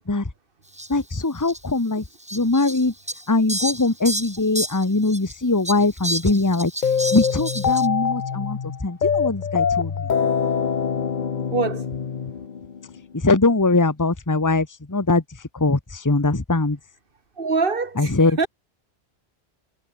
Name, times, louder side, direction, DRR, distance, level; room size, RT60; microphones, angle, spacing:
Fowl, 0.8-0.9 1.4-1.6 2.3-5.3 5.6-7.9, right 1 dB, 5° right, 0.8 m, -30 dB
voice 1, 0.9-2.0 2.3-2.9 3.3-6.7 7.1-10.1 13.1-15.2 15.5-16.8 18.0-18.4, left 3 dB, 15° left, 1.4 m, -21 dB
sound 1, 6.8-13.0, left 6 dB, 45° left, 1.0 m, -24 dB
voice 2, 11.5-11.9 17.4-18.5, right 4 dB, 55° right, 2.1 m, -24 dB
omnidirectional pair, 1.1 m